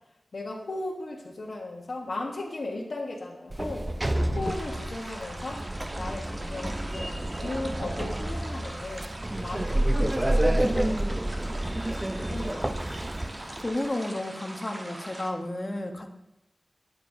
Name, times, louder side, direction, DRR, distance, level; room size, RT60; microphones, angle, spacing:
voice 1, 0.3-3.9 4.4-5.6 5.9-9.1 9.4-11.1 11.6-13.0, left 2 dB, 75° left, -2 dB, 1.0 m, -37 dB
Sliding door, 3.5-13.6, right 1 dB, 25° right, 0.4 m, -29 dB
sound 1, 4.4-15.3, right 1 dB, 40° right, 1.0 m, -42 dB
voice 2, 13.6-16.1, left 1 dB, 35° left, 3 dB, 0.8 m, -32 dB
8.5 x 8.5 x 2.6 m, 0.90 s
wide cardioid pair, 75°, 0 cm